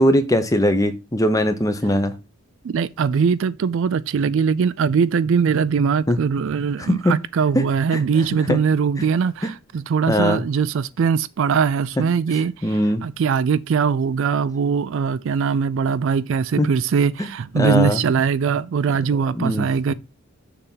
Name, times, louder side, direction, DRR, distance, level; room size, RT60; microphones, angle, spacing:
voice 1, 0.0-2.1 6.1-6.2 6.8-7.1 7.5-7.6 7.9-8.0 8.5-8.6 10.1-10.4 12.6-13.0 16.6-16.7 17.2-17.3 17.6-18.0 19.3-19.7, equal, 15° left, 0.7 m, -19 dB
voice 2, 2.6-19.9, right 6 dB, 60° right, 0.3 m, -21 dB
6.7 x 3.5 x 5.6 m
head